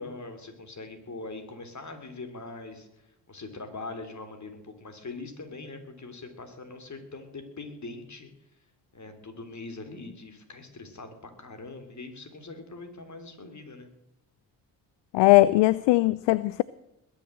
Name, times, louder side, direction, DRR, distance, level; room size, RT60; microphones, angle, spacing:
voice 1, 0.0-8.3 8.9-13.9, left 3 dB, 35° left, 7 dB, 3.4 m, -42 dB
voice 2, 15.1-16.6, left 18 dB, 65° left, 20 dB, 0.5 m, -19 dB
21.0 x 7.2 x 7.8 m, 0.92 s
hypercardioid pair, 45°, 46 cm